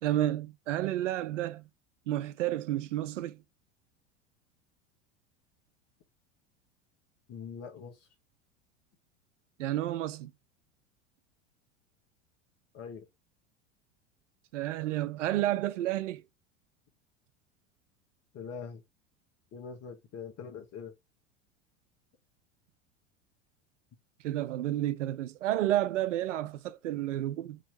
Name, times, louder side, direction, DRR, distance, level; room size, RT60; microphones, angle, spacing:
voice 1, 0.0-1.6 2.1-3.4 9.6-10.3 14.5-16.2 24.2-27.6, right 13 dB, 80° right, 0.5 m, -31 dB
voice 2, 7.3-8.1 12.7-13.1 18.3-18.8 19.5-20.9, left 6 dB, 40° left, 1.4 m, -43 dB
3.7 x 2.9 x 3.0 m
hypercardioid pair, 85°, 37 cm